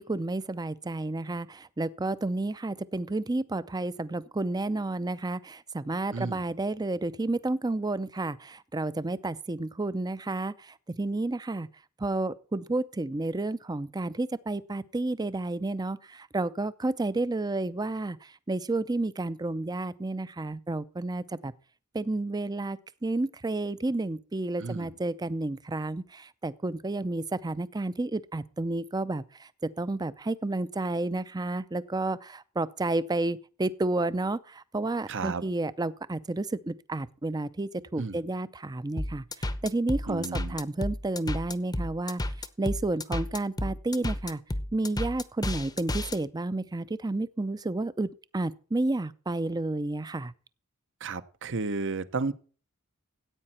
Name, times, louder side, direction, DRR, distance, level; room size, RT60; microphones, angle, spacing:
voice 1, 0.0-11.7 12.0-21.5 21.9-29.5 29.8-42.2 42.6-44.4 44.7-50.3, right 2 dB, 20° right, 0.5 m, -31 dB
voice 2, 35.1-35.4 38.0-38.2 40.1-40.6 51.0-52.3, right 4 dB, 60° right, 0.9 m, -32 dB
sound 1, 39.0-46.2, left 1 dB, 20° left, 0.8 m, -32 dB
14.5 x 8.8 x 4.3 m
head